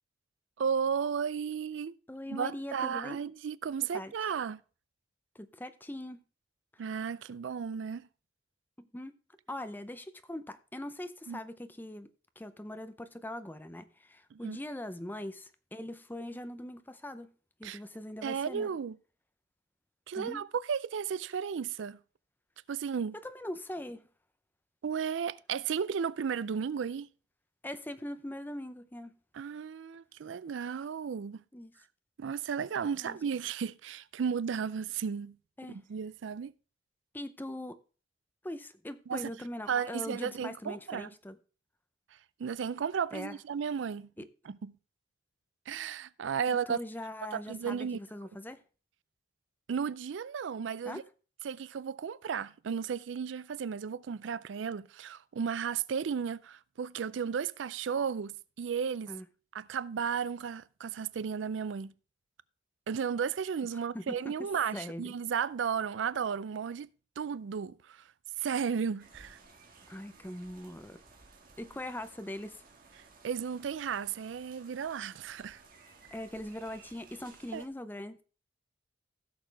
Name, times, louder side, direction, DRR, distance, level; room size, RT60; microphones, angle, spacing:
voice 1, 0.6-2.0 2.3-4.6 6.8-8.1 11.3-11.4 14.3-14.6 17.6-17.8 18.2-19.0 20.1-22.0 22.7-23.1 24.8-27.1 29.3-31.4 32.2-35.4 35.7-36.5 39.1-39.3 39.7-41.1 42.4-44.1 44.5-44.7 45.7-46.8 47.3-48.0 49.7-51.0 51.4-59.1 59.5-61.9 62.9-66.9 67.2-68.0 68.4-69.4 73.2-75.6 77.5-77.6, right 7 dB, 75° right, 0.4 m, -34 dB
voice 2, 2.1-3.2 3.9-4.1 5.3-6.2 6.7-6.8 8.8-9.2 9.5-12.1 12.4-17.3 17.6-18.7 20.1-20.4 23.2-24.1 27.6-29.2 31.5-31.8 33.0-33.2 35.6-35.8 37.1-37.8 38.4-41.4 43.1-43.4 44.2-44.3 46.5-48.6 50.8-51.0 59.1-59.2 63.9-64.3 64.7-65.1 69.9-71.0 71.6-72.6 76.1-78.2, left 1 dB, 10° left, 0.6 m, -41 dB
sound 1, 69.0-77.7, right 4 dB, 50° right, 1.8 m, -57 dB
15.5 x 6.6 x 3.3 m
head